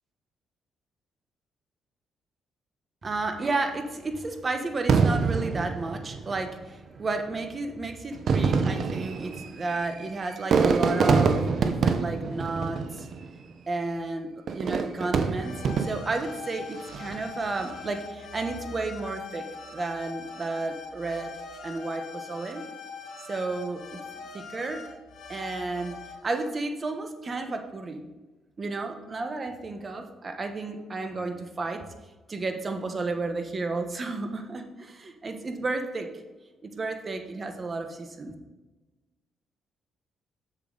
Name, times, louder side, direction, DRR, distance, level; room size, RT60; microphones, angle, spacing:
voice 1, 3.0-13.1 13.7-19.4 19.7-21.3 21.6-22.6 23.3-24.0 24.3-24.8 25.3-25.9 26.2-28.1 28.6-31.8 32.3-36.1 36.6-38.3, right 3 dB, 35° right, 5 dB, 1.1 m, -32 dB
Fireworks, 4.9-6.5 7.3-7.4 8.1-13.4 14.5-16.2 16.8-17.3, right 5 dB, 55° right, 0.7 m, -25 dB
sound 1, 15.3-26.5, left 5 dB, 85° left, 2.5 m, -42 dB
7.2 x 7.1 x 4.0 m, 1.2 s
cardioid pair, 90°, 0 cm